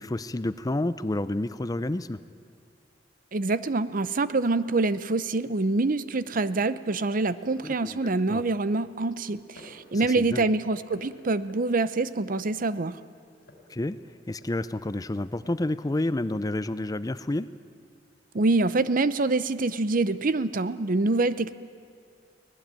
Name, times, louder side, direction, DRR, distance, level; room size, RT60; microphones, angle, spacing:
voice 1, 0.0-2.2 7.6-8.0 8.3-8.4 10.2-10.4 13.7-14.0 14.3-17.5, left 1 dB, 20° left, 14 dB, 0.5 m, -29 dB
voice 2, 3.3-13.0 18.3-21.5, right 3 dB, 50° right, 15 dB, 0.7 m, -25 dB
sound 1, 9.2-9.9 10.4-12.0 13.3-14.8 15.4-16.6, left 1 dB, 60° left, 3.7 m, -54 dB
23.5 x 18.0 x 9.0 m, 2.3 s
head